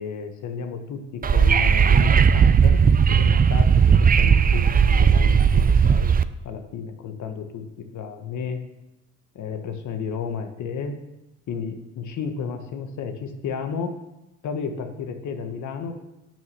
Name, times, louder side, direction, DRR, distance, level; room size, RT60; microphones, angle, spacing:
voice 1, 0.0-2.8 3.1-8.6 9.3-10.9 11.5-13.9 14.4-16.0, left 6 dB, 75° left, 6 dB, 1.4 m, -32 dB
Wind / Subway metro underground, 1.2-6.2, right 6 dB, 30° right, 0.5 m, -16 dB
10.5 x 6.3 x 7.2 m, 0.94 s
cardioid pair, 90°, 30 cm